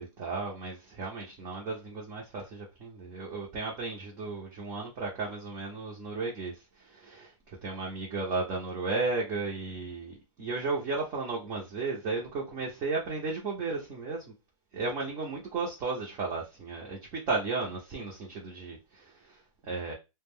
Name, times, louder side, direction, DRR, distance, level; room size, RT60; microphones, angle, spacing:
voice 1, 0.0-14.3 14.7-19.9, right 3 dB, 25° right, 0.7 m, -34 dB
2.4 x 2.1 x 3.5 m
hypercardioid pair, 150°, 17 cm